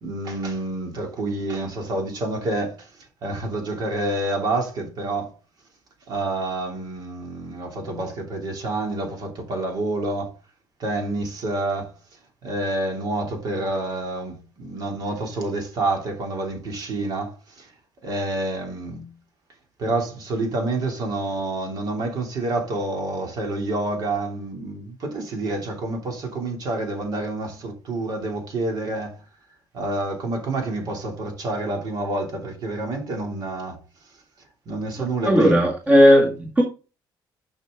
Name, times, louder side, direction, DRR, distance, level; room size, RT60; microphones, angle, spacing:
voice 1, 0.0-5.3 6.1-10.3 10.8-11.9 12.4-17.7 18.0-19.1 19.8-29.2 29.7-33.8 34.7-35.6, right 2 dB, 50° right, 2.9 m, -28 dB
voice 2, 35.3-36.6, equal, 20° right, 1.9 m, -15 dB
11.0 x 5.9 x 3.8 m
cardioid pair, 150°, 9 cm